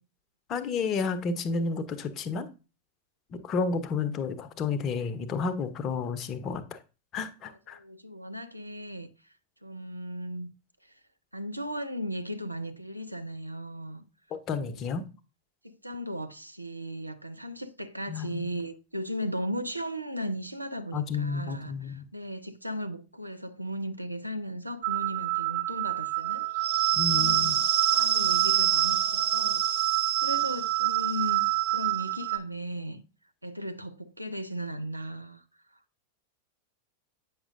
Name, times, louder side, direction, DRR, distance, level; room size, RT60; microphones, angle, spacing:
voice 1, 0.5-2.5 3.3-6.8 7.1-7.8 14.3-15.0 18.1-18.5 20.9-22.0 26.9-27.6, left 4 dB, 30° left, 0.8 m, -31 dB
voice 2, 7.5-9.1 9.6-10.5 11.3-14.0 14.6-14.7 15.6-26.5 27.1-27.6 27.9-29.8 30.2-31.4 31.7-33.0 33.4-35.4, equal, 85° right, 0.5 m, -36 dB
sound 1, 24.8-32.4, right 13 dB, 55° right, 0.8 m, -26 dB
8.6 x 6.1 x 2.6 m
figure-of-eight pair, 90°, 0 cm